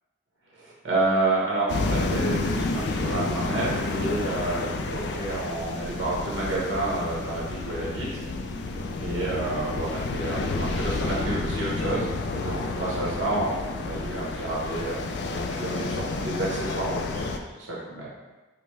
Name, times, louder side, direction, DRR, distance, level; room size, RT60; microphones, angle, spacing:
voice 1, 0.6-8.1 9.0-12.1 12.3-15.0 15.3-17.3 17.6-18.1, right 2 dB, 60° right, -5 dB, 1.1 m, -29 dB
sound 1, 1.7-17.4, left 3 dB, 60° left, 0.3 m, -30 dB
5.2 x 2.1 x 3.1 m, 1.2 s
head